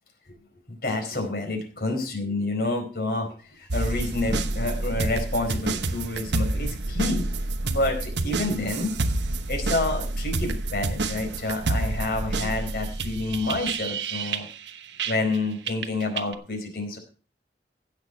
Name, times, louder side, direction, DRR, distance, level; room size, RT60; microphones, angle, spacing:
voice 1, 0.7-7.3 7.6-8.9 9.5-14.5 15.1-17.0, left 2 dB, 55° left, 3 dB, 4.4 m, -28 dB
sound 1, 3.7-15.4 15.7-16.3, right 2 dB, 85° right, 1.1 m, -28 dB
16.0 x 6.2 x 5.9 m, 0.38 s
head